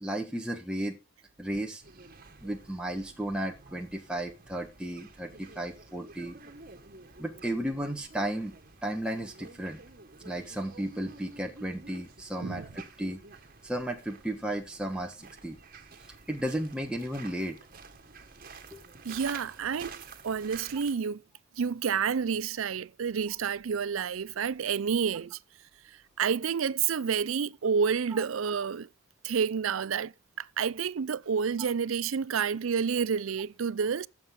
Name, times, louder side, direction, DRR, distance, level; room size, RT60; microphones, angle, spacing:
voice 1, 0.0-1.0 1.4-1.8 2.4-6.4 7.2-8.5 8.8-9.8 10.2-13.2 13.6-15.6 16.3-17.6 18.7-18.8 28.1-28.2, right 1 dB, 5° right, 1.2 m, -34 dB
sound 1, 1.8-21.0, right 4 dB, 45° right, 1.7 m, -50 dB
voice 2, 19.0-21.2 21.6-25.4 26.2-28.9 29.2-34.1, right 6 dB, 80° right, 0.5 m, -29 dB
14.0 x 7.5 x 3.7 m
head